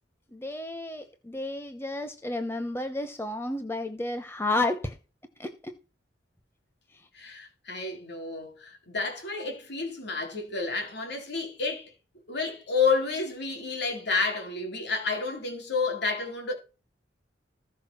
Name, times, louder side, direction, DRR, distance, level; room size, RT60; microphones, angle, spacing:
voice 1, 0.3-4.9 5.4-5.5, left 2 dB, 10° left, 0.9 m, -31 dB
voice 2, 7.1-11.9 12.3-16.5, left 4 dB, 60° left, 3.7 m, -30 dB
14.5 x 6.3 x 6.1 m
head